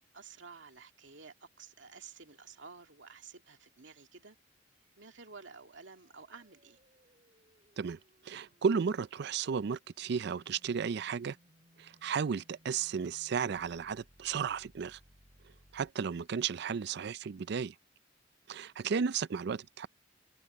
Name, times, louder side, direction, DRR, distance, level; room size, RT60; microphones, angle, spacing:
voice 1, 0.1-4.4 5.0-6.8, right 5 dB, 80° right, 2.4 m, -52 dB
sound 1, 4.8-15.9, equal, 40° right, 6.6 m, -66 dB
voice 2, 7.8-11.4 11.8-15.0 15.7-17.7 18.5-19.9, right 6 dB, 60° right, 0.4 m, -34 dB
head